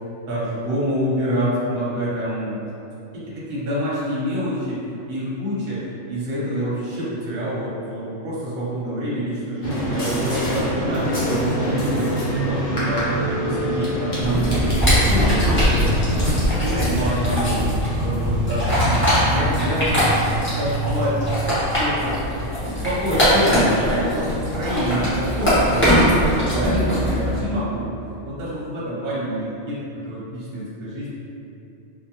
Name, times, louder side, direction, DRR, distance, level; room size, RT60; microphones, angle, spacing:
voice 1, 0.3-2.6 3.1-3.2 3.5-4.8 5.1-5.8 6.1-15.8 16.1-17.7 18.0-20.1 20.5-21.2 21.4-22.5 22.8-27.9 28.2-31.1, equal, 55° right, -7 dB, 0.8 m, -26 dB
sound 1, 9.6-16.2, right 1 dB, 55° left, 0.8 m, -25 dB
sound 2, 14.2-27.4, equal, 15° left, 0.6 m, -21 dB
2.3 x 2.2 x 2.8 m, 2.6 s
omnidirectional pair, 1.3 m